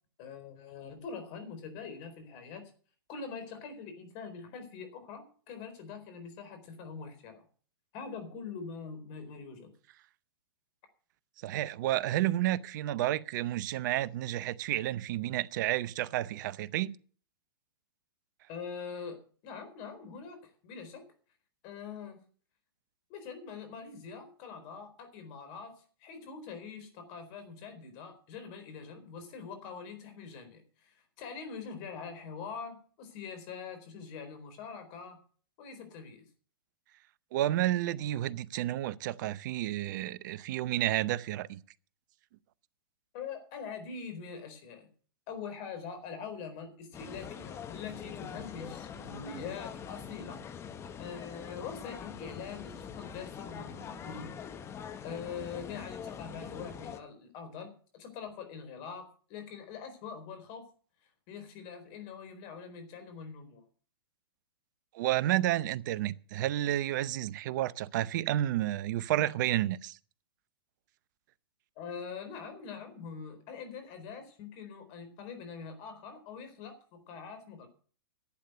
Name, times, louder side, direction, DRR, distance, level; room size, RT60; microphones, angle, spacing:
voice 1, 0.2-2.6 3.1-7.4 7.9-9.7 18.5-21.1 21.6-22.2 23.1-35.2 35.6-36.2 43.1-44.9 45.3-50.4 51.0-54.3 55.0-60.7 61.3-63.6 71.8-77.7, left 6 dB, 40° left, 4.2 m, -44 dB
voice 2, 11.4-17.0 37.3-41.6 64.9-70.0, right 14 dB, 50° right, 0.7 m, -31 dB
sound 1, 46.9-57.0, left 7 dB, 20° left, 1.1 m, -44 dB
11.5 x 8.4 x 7.8 m
hypercardioid pair, 120°, 12 cm